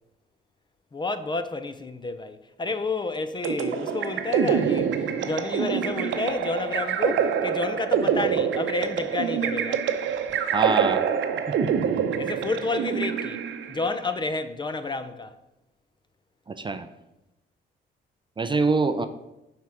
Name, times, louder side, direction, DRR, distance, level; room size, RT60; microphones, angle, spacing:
voice 1, 0.9-9.8 10.3-10.4 12.2-13.4 13.7-15.3 19.0-19.1, left 3 dB, 25° left, 0.5 m, -30 dB
sound 1, 3.4-13.9, right 7 dB, 75° right, 0.7 m, -26 dB
voice 2, 10.5-11.0 11.5-11.7 16.5-16.9 18.4-19.1, right 4 dB, 25° right, 0.4 m, -25 dB
5.9 x 4.4 x 6.1 m
cardioid pair, 90°, 20 cm